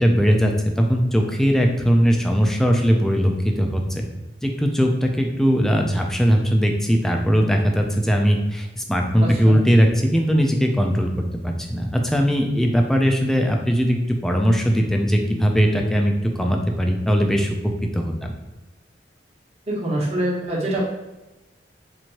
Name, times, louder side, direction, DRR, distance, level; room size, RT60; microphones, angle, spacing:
voice 1, 0.0-4.0 4.4-11.1 11.4-14.0 14.2-17.5 17.9-18.3, equal, 5° left, 2 dB, 0.4 m, -19 dB
voice 2, 9.2-9.6 19.7-20.8, right 1 dB, 35° right, -5 dB, 1.1 m, -25 dB
4.4 x 2.6 x 2.9 m, 1.0 s
head